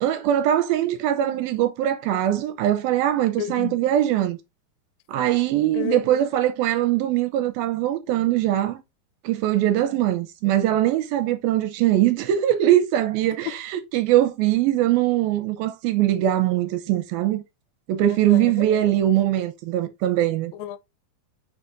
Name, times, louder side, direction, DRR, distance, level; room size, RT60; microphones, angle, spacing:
voice 1, 0.0-4.4 5.1-8.8 9.2-17.4 17.9-20.5, right 12 dB, 80° right, 2.5 m, -21 dB
voice 2, 3.4-3.8 5.7-6.1 13.5-13.6 18.3-18.7 20.6-20.8, left 13 dB, 80° left, 2.3 m, -30 dB
8.2 x 5.1 x 2.5 m
omnidirectional pair, 4.3 m